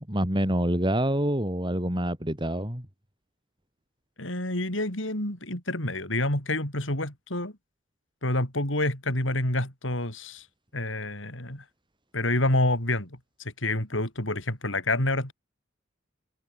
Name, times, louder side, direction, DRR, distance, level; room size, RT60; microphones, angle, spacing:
voice 1, 0.0-2.9, right 1 dB, 25° right, 5.0 m, -26 dB
voice 2, 4.2-7.5 8.2-10.5 10.7-11.6 12.1-13.1 13.4-15.3, left 1 dB, 80° left, 7.5 m, -28 dB
head